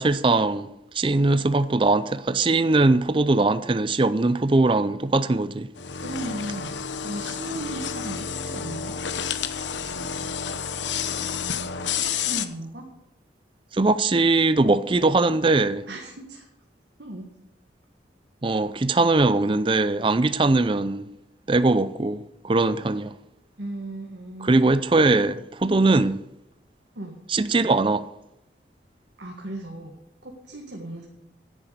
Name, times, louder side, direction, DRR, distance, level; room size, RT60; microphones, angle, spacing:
voice 1, 0.0-5.7 13.7-15.9 18.4-21.1 21.5-23.1 24.4-26.2 27.3-28.1, right 2 dB, 25° right, 0.5 m, -21 dB
sound 1, 5.8-12.4, left 7 dB, 80° left, 0.9 m, -30 dB
voice 2, 6.0-9.0 11.9-12.9 15.9-16.5 17.0-17.3 23.6-24.6 27.0-27.2 29.2-31.1, right 1 dB, 70° right, 1.8 m, -36 dB
10.5 x 9.8 x 6.8 m
head